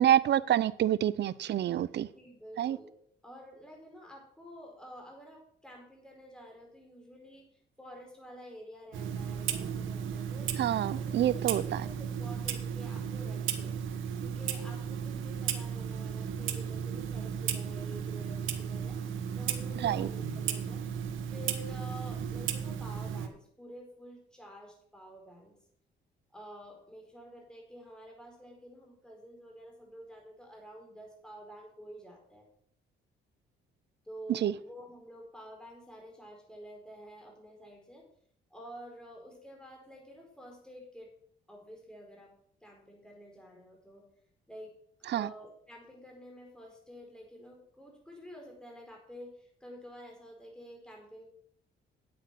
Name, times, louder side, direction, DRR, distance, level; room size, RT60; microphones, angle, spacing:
voice 1, 0.0-2.1 2.6-2.8 10.6-11.6 19.8-20.1 34.3-34.5 45.1-45.3, right 11 dB, 60° right, 19 dB, 0.6 m, -27 dB
voice 2, 2.1-2.9 3.2-7.4 7.8-10.5 10.9-13.8 14.2-19.0 19.4-20.9 21.3-25.6 26.3-32.4 34.0-38.1 38.5-41.1 41.5-42.3 42.6-44.1 44.5-44.8 45.1-51.3, equal, 5° left, 0 dB, 4.8 m, -49 dB
Clock, 8.9-23.3, right 8 dB, 80° right, 1.3 m, -35 dB
9.3 x 8.7 x 6.1 m, 0.64 s
cardioid pair, 90°, 20 cm